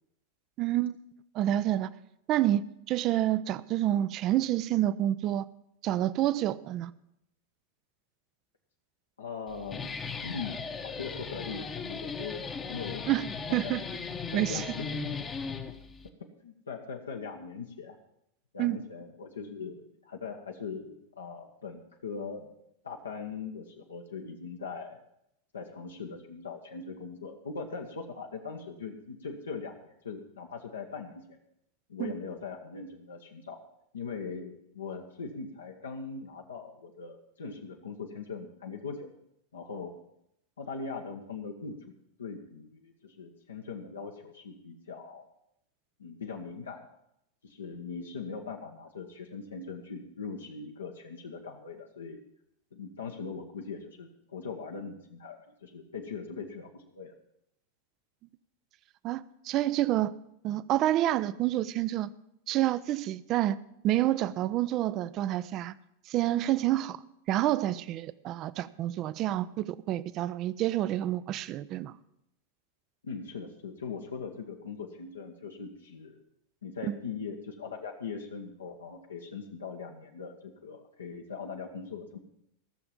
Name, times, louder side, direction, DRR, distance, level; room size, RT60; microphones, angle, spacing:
voice 1, 0.6-1.0 1.3-1.9 2.3-5.4 5.8-6.9 13.1-13.2 13.5-13.8 14.3-14.7 18.6-18.8 32.0-32.1 59.0-60.1 60.4-62.1 62.5-63.6 63.8-65.7 66.1-67.0 67.3-71.9 76.9-77.0, right 13 dB, 35° right, 17 dB, 0.5 m, -28 dB
voice 2, 9.2-9.9 10.2-10.6 10.8-13.1 13.5-13.7 14.3-14.9 16.2-18.0 18.5-22.5 22.8-25.0 25.5-31.4 31.9-33.6 33.9-39.1 39.5-39.9 40.6-45.3 46.0-46.8 47.4-52.2 52.7-57.1 73.0-76.2 76.6-82.2, left 5 dB, 70° left, 2 dB, 1.1 m, -40 dB
Guitar, 9.5-16.1, left 5 dB, 20° left, 1.0 m, -37 dB
15.0 x 6.9 x 7.4 m, 0.78 s
figure-of-eight pair, 90°, 0 cm